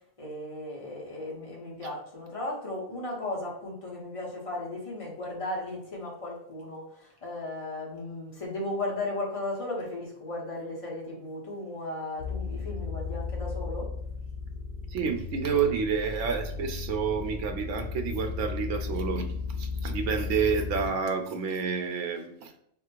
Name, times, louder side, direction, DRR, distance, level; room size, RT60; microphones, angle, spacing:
voice 1, 0.2-13.9, left 2 dB, 30° left, -3 dB, 1.2 m, -36 dB
sound 1, 12.2-20.9, left 4 dB, 50° left, 0.6 m, -35 dB
voice 2, 14.9-22.5, right 6 dB, 85° right, 5 dB, 0.9 m, -29 dB
3.6 x 2.4 x 4.4 m, 0.70 s
omnidirectional pair, 1.2 m